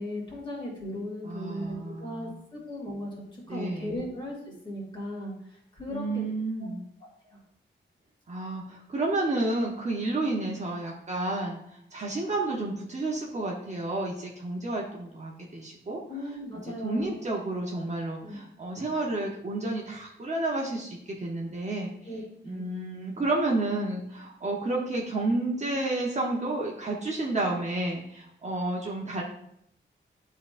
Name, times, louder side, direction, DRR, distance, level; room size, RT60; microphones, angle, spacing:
voice 1, 0.0-4.4 4.6-6.2 7.2-7.4 16.1-17.3 18.2-18.4 22.0-22.6, left 1 dB, 25° left, -4 dB, 2.2 m, -37 dB
voice 2, 1.2-2.4 3.5-4.0 5.9-6.8 8.3-11.6 11.9-16.0 16.8-21.9 22.4-29.2, right 2 dB, 35° right, -2 dB, 0.8 m, -31 dB
11.0 x 3.7 x 2.5 m, 0.73 s
wide cardioid pair, 160°, 20 cm